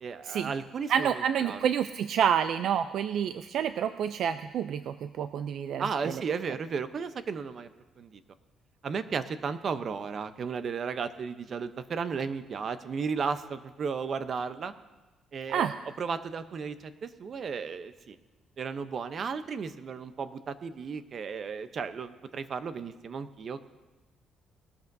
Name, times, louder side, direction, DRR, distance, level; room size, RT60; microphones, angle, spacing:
voice 1, 0.0-1.6 5.8-7.7 8.0-8.2 8.8-14.7 15.3-15.7 16.0-18.2 18.6-23.6, right 5 dB, 45° right, 11 dB, 0.8 m, -34 dB
voice 2, 0.9-6.2 15.5-15.7, right 8 dB, 65° right, 11 dB, 0.4 m, -28 dB
20.0 x 12.5 x 2.7 m, 1.2 s
cardioid pair, 105°, 0 cm